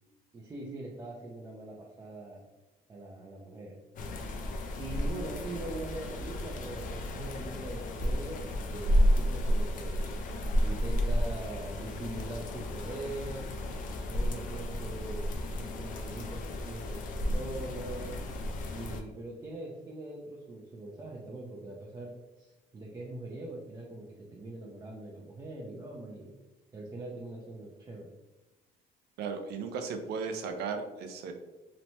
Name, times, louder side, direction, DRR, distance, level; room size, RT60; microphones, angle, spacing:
voice 1, 0.3-2.4 2.9-3.8 4.8-10.2 10.6-13.6 14.1-18.1 18.7-26.3 26.7-28.1, right 2 dB, 20° right, -3 dB, 0.4 m, -42 dB
sound 1, 4.0-19.0, equal, 50° left, 0.4 m, -32 dB
voice 2, 29.2-31.3, right 5 dB, 75° right, 6 dB, 0.5 m, -36 dB
3.0 x 2.1 x 2.7 m, 1.1 s
cardioid pair, 110°, 17 cm